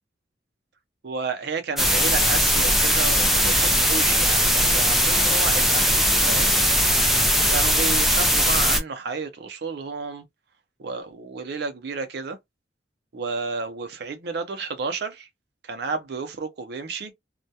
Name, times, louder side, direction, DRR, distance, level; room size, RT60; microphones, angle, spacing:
voice 1, 1.0-6.5 7.5-10.2 10.8-12.4 13.1-15.3 15.6-17.1, right 4 dB, 60° right, 0.5 m, -31 dB
sound 1, 1.8-8.8, equal, ahead, 0.4 m, -20 dB
2.2 x 2.1 x 2.7 m
head